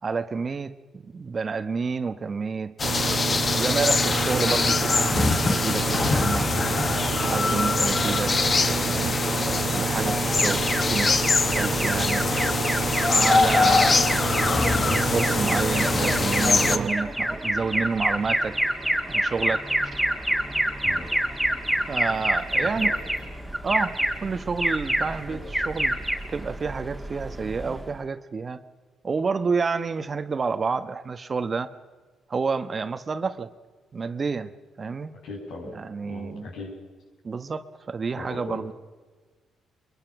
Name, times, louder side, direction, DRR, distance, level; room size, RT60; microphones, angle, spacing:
voice 1, 0.0-3.2 3.6-6.5 7.3-8.3 8.6-9.2 9.7-12.3 13.1-14.1 14.8-18.6 19.1-19.7 21.9-22.9 23.6-26.0 26.3-28.6 29.0-31.7 32.3-33.5 33.9-34.5 34.8-35.2 35.7-36.5 37.2-38.7, right 4 dB, 35° right, 11 dB, 1.2 m, -29 dB
sound 1, 2.8-16.8, left 4 dB, 35° left, 1.1 m, -24 dB
sound 2, 2.8-16.9, right 7 dB, 55° right, 0.7 m, -29 dB
Alarm, 10.4-28.0, right 1 dB, ahead, 2.6 m, -28 dB
voice 2, 22.5-23.1 25.2-25.4 35.2-36.8 38.1-38.7, left 2 dB, 80° left, 0 dB, 7.0 m, -39 dB
23.5 x 23.0 x 6.1 m, 1.4 s
cardioid pair, 90°, 0 cm